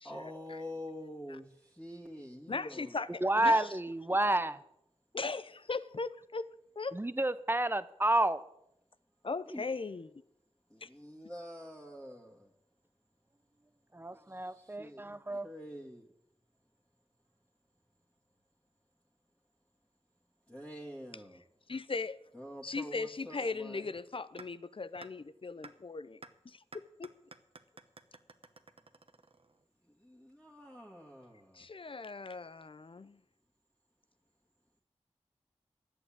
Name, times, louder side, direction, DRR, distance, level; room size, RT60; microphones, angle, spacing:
voice 1, 0.0-3.0 9.5-9.6 10.7-12.5 14.3-15.1 15.4-16.1 20.5-21.4 22.3-23.9 30.0-31.7, left 1 dB, 10° left, 2.0 m, -47 dB
voice 2, 2.5-3.6 5.1-6.5 6.8-6.9 9.2-10.1 10.8-10.9 21.7-22.2 22.6-26.2 26.4-27.1 31.5-33.2, left 4 dB, 50° left, 0.7 m, -38 dB
voice 3, 3.2-4.6 6.9-8.4 13.9-15.5, right 1 dB, 20° right, 0.8 m, -30 dB
sound 1, 24.4-24.5 25.0-25.1 25.6-25.7 26.2-26.3 26.7-29.6, right 3 dB, 55° right, 1.1 m, -51 dB
11.5 x 8.3 x 8.7 m
cardioid pair, 45°, 11 cm